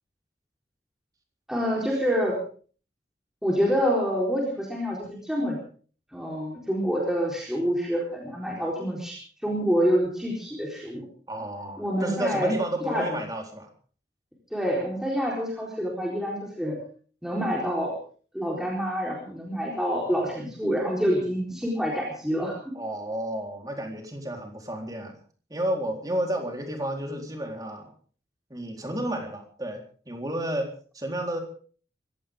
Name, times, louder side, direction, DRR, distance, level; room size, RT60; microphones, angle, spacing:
voice 1, 1.5-2.4 3.4-5.6 6.1-11.1 11.8-12.5 12.8-13.1 14.5-16.8 17.2-18.0 18.3-22.7, equal, 5° right, -3 dB, 4.1 m, -27 dB
voice 2, 11.3-13.7 22.7-25.2 25.5-27.9 28.5-30.7 30.9-31.4, right 1 dB, 20° right, 2 dB, 4.0 m, -31 dB
24.5 x 16.0 x 3.7 m, 0.42 s
head